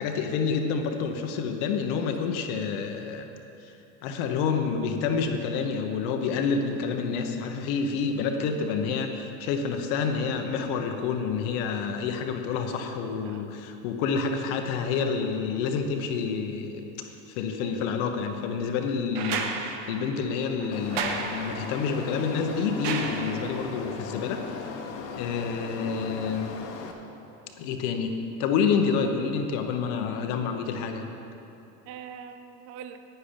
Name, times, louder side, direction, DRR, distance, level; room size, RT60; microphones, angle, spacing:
voice 1, 0.0-3.3 3.6-3.7 4.0-24.4 25.1-26.6 27.6-31.1, left 5 dB, 40° left, 5 dB, 0.9 m, -28 dB
voice 2, 17.6-18.0 25.8-26.1 31.9-33.0, right 8 dB, 30° right, 9 dB, 0.5 m, -43 dB
sound 1, 19.1-23.8 25.3-25.4, right 5 dB, 50° right, 1.0 m, -34 dB
sound 2, 20.7-26.9, left 5 dB, 75° left, 1.4 m, -38 dB
10.0 x 9.4 x 5.2 m, 2.9 s
supercardioid pair, 145°, 48 cm